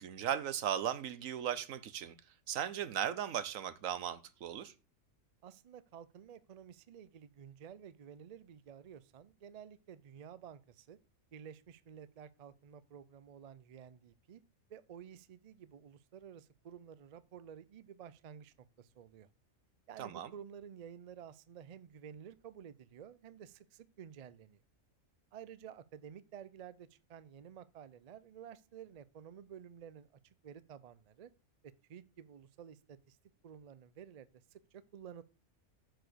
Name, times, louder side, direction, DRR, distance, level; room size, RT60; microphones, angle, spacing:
voice 1, 0.0-2.1 2.5-4.7 20.0-20.3, right 9 dB, 90° right, 1.2 m, -37 dB
voice 2, 5.4-11.0 11.3-14.4 14.7-19.3 19.9-24.6 25.3-30.1 30.4-31.3 31.9-33.2 33.4-35.2, right 8 dB, 50° right, 0.4 m, -52 dB
7.7 x 4.9 x 6.7 m
omnidirectional pair, 1.4 m